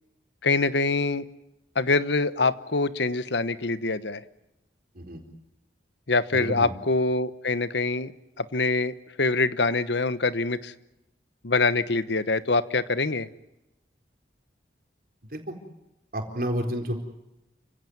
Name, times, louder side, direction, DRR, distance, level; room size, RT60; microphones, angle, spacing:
voice 1, 0.4-1.2 1.7-4.2 6.1-8.1 8.4-10.7 11.4-13.3, left 3 dB, 75° left, 14 dB, 1.1 m, -25 dB
voice 2, 6.3-6.7 15.3-15.6 16.1-17.0, equal, 50° right, 3 dB, 4.4 m, -30 dB
29.5 x 16.5 x 9.6 m, 0.93 s
head